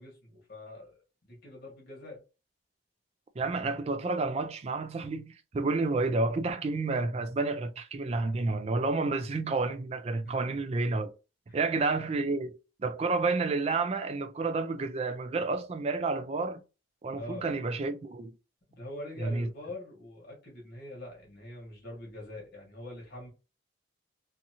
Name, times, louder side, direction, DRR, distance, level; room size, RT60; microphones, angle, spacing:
voice 1, 0.0-2.2 10.2-10.6 11.5-11.7 17.1-17.5 18.7-23.3, left 1 dB, 50° left, 1.2 m, -44 dB
voice 2, 3.4-11.1 11.5-16.6 17.0-18.3 19.2-19.5, right 3 dB, 30° right, 0.3 m, -30 dB
2.7 x 2.5 x 2.7 m
head